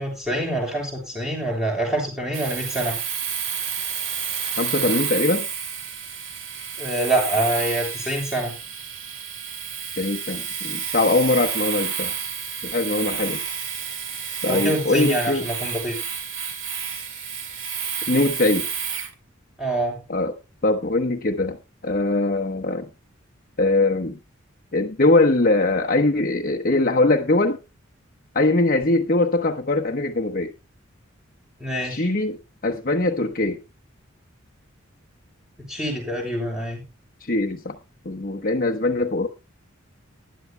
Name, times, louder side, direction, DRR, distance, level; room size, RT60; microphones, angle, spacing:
voice 1, 0.0-3.0 6.8-8.5 14.5-15.9 19.6-20.0 31.6-32.1 35.7-36.8, right 1 dB, 5° right, 6.5 m, -25 dB
Domestic sounds home sounds, 2.3-19.1, right 7 dB, 65° right, 1.9 m, -30 dB
voice 2, 4.6-5.5 10.0-12.1 12.6-13.4 14.4-15.5 18.1-18.7 20.1-20.3 20.6-21.6 21.8-22.9 23.6-24.2 24.7-27.6 28.3-30.5 31.8-33.6 37.2-37.8 38.0-39.3, left 2 dB, 45° left, 1.1 m, -22 dB
20.0 x 11.5 x 2.2 m
head